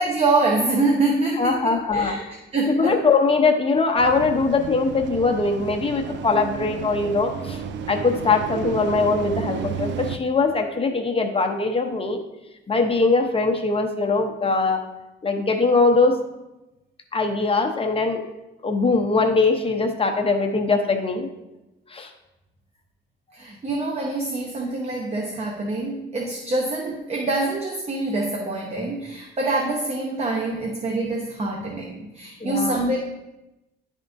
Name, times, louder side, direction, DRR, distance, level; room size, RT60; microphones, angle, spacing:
voice 1, 0.0-3.0 23.3-33.0, right 2 dB, 30° right, 0 dB, 0.8 m, -25 dB
voice 2, 1.4-2.2 2.7-7.6 7.9-12.2 12.7-14.8 15.2-16.2 17.1-18.2 18.6-21.3 21.9-22.1 32.4-32.8, left 3 dB, 30° left, 4 dB, 0.8 m, -21 dB
sound 1, 4.0-10.2, right 7 dB, 65° right, 0.4 m, -32 dB
10.5 x 3.6 x 2.6 m, 0.98 s
cardioid pair, 90°, 20 cm